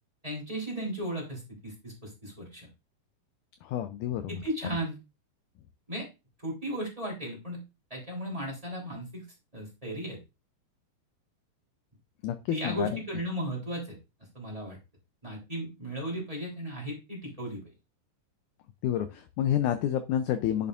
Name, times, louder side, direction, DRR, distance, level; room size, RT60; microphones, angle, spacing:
voice 1, 0.2-2.7 4.3-5.0 5.9-6.1 6.4-7.6 7.9-9.2 9.5-10.2 12.5-14.0 14.3-14.8 15.2-17.6, equal, 10° right, -2 dB, 2.9 m, -35 dB
voice 2, 3.6-4.4 12.2-12.9 18.8-20.7, left 10 dB, 80° left, 9 dB, 1.8 m, -29 dB
10.5 x 6.7 x 2.5 m, 0.26 s
omnidirectional pair, 4.2 m